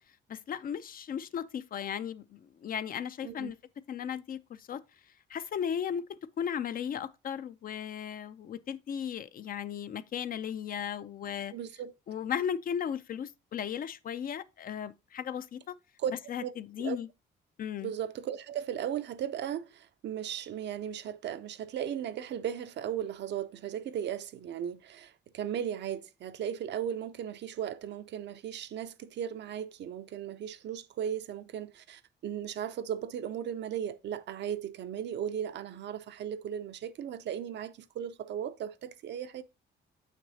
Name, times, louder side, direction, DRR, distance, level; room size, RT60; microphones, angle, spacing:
voice 1, 0.3-3.6 3.9-4.8 5.3-6.0 6.4-11.5 12.1-15.8 16.3-17.1 17.6-17.9, left 8 dB, 45° left, 0.4 m, -36 dB
voice 2, 3.2-3.5 11.5-11.9 16.0-16.1 16.4-16.5 16.8-17.0 17.8-39.4, right 9 dB, 60° right, 0.5 m, -36 dB
7.0 x 5.9 x 2.7 m
cardioid pair, 90°, 20 cm